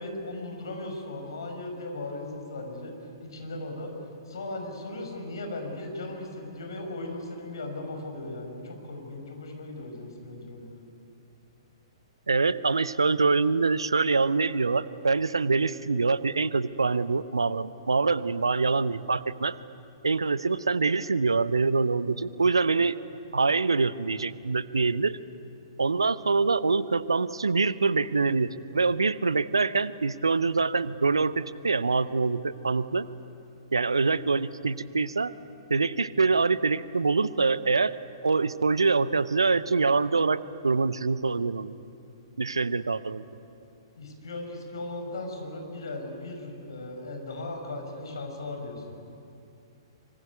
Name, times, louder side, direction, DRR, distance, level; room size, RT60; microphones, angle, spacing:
voice 1, 0.0-2.9 3.2-3.9 4.3-10.8 44.0-48.8, left 2 dB, 60° left, 3 dB, 6.1 m, -37 dB
voice 2, 12.3-19.6 20.0-23.0 23.3-25.2 25.8-33.1 33.7-35.3 35.7-37.9 38.2-41.7 42.4-43.2, right 4 dB, 75° right, 16 dB, 0.9 m, -25 dB
24.5 x 24.5 x 9.6 m, 2.6 s
figure-of-eight pair, 115°, 3 cm